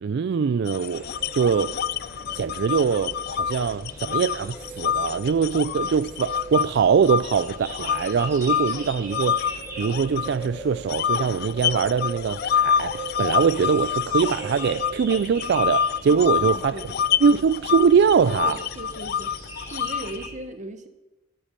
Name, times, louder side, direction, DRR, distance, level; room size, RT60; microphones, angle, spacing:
voice 1, 0.0-1.7 2.4-16.8 17.2-18.6, right 6 dB, 60° right, 0.3 m, -22 dB
sound 1, 0.7-6.7 7.0-10.5 10.9-20.3, left 8 dB, 55° left, 0.3 m, -27 dB
sound 2, 0.9-20.3, right 2 dB, 15° right, 4.6 m, -39 dB
voice 2, 16.1-17.0 18.4-19.4 19.7-20.9, right 2 dB, 40° right, 1.1 m, -38 dB
12.0 x 10.5 x 6.7 m
head